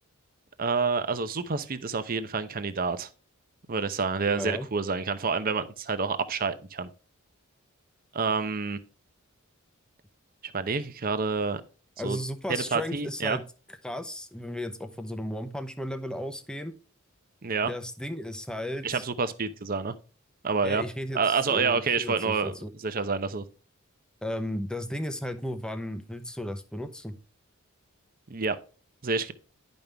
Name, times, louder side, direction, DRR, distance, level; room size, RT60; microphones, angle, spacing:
voice 1, 0.6-3.1 3.7-6.9 8.1-8.8 10.4-11.6 12.0-12.2 12.5-13.4 17.4-17.7 18.8-19.9 20.4-20.8 21.1-23.4 28.3-28.6 29.0-29.3, right 4 dB, 40° right, 0.7 m, -28 dB
voice 2, 4.3-4.7 12.0-13.4 13.8-16.7 17.6-19.0 20.6-22.7 24.2-27.1, left 1 dB, 5° left, 0.8 m, -35 dB
10.5 x 5.4 x 3.4 m
head